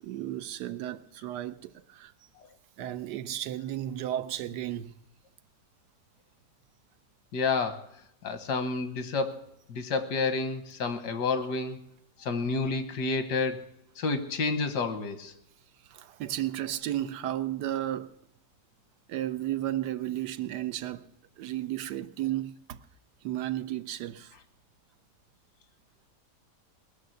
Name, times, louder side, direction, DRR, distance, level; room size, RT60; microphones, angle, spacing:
voice 1, 0.0-2.1 2.8-4.9 15.9-18.2 19.1-21.1 21.4-22.8 23.2-24.3, right 12 dB, 90° right, 1.3 m, -33 dB
voice 2, 7.3-7.9 8.2-9.4 9.7-11.8 12.2-13.7 14.0-15.3, left 4 dB, 85° left, 1.8 m, -29 dB
19.5 x 6.6 x 7.9 m
omnidirectional pair, 1.7 m